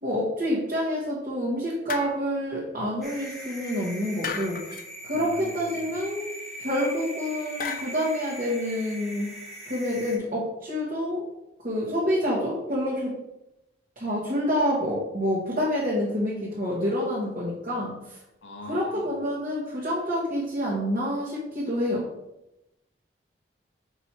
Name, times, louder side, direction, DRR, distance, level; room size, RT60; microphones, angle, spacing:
voice 1, 0.0-4.6 5.0-6.3 6.6-9.3 9.7-11.2 11.6-13.1 14.0-18.2 18.7-22.0, equal, 45° right, -6 dB, 1.3 m, -27 dB
sound 1, 1.9-2.5 4.2-4.9 7.6-8.1, left 5 dB, 50° left, 0.6 m, -35 dB
sound 2, 3.0-10.2, equal, ahead, 1.2 m, -40 dB
voice 2, 5.1-5.9 18.4-19.1, left 2 dB, 85° left, 3 dB, 0.9 m, -43 dB
5.4 x 4.3 x 4.6 m, 0.90 s
head